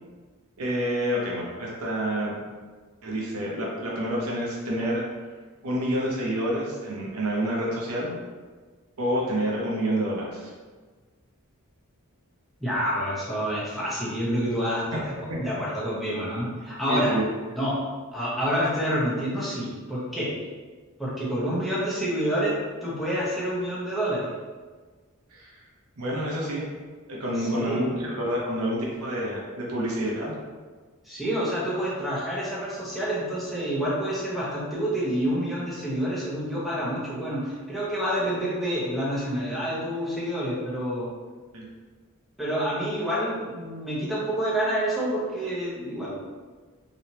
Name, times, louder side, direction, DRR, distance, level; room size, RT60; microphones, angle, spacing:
voice 1, 0.6-2.3 3.0-5.0 5.6-8.1 9.0-10.5 14.9-15.0 15.3-15.4 16.9-17.2 25.3-25.5 26.0-26.6 27.1-30.4 41.5-41.6, equal, 80° right, -4 dB, 0.7 m, -28 dB
voice 2, 12.6-17.1 17.6-17.8 18.1-20.3 21.0-22.5 22.8-24.3 27.4-27.9 31.0-41.1 42.4-46.1, equal, ahead, -8 dB, 0.9 m, -28 dB
3.3 x 2.9 x 2.8 m, 1.4 s
head